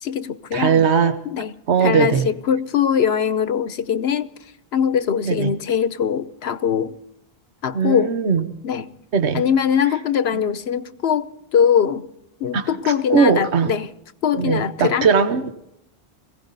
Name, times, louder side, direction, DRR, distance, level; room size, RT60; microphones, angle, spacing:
voice 1, 0.0-0.9 1.3-1.5 1.8-4.3 4.7-7.0 7.6-8.1 8.6-8.9 9.3-12.1 12.4-13.9 14.2-15.1, left 8 dB, 70° left, 1.1 m, -21 dB
voice 2, 0.5-1.2 1.7-2.3 5.3-5.5 7.7-8.5 9.1-9.4 10.3-10.4 12.5-13.7 14.3-15.5, right 6 dB, 85° right, 1.3 m, -19 dB
21.5 x 16.5 x 4.0 m
omnidirectional pair, 1.1 m